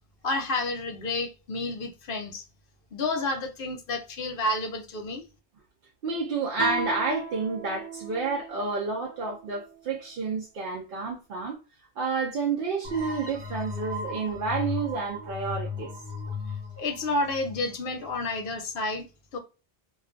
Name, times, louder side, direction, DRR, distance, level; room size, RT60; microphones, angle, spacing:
voice 1, 0.2-2.4 2.9-5.2 16.8-19.1 19.3-19.4, left 2 dB, 60° left, 0.7 m, -30 dB
voice 2, 6.0-11.6 12.0-15.9, right 4 dB, 60° right, 0.7 m, -30 dB
Guitar, 6.6-9.8, right 1 dB, 15° right, 0.7 m, -37 dB
sound 1, 12.8-18.3, left 4 dB, 80° right, 1.2 m, -36 dB
2.3 x 2.2 x 2.5 m
omnidirectional pair, 1.1 m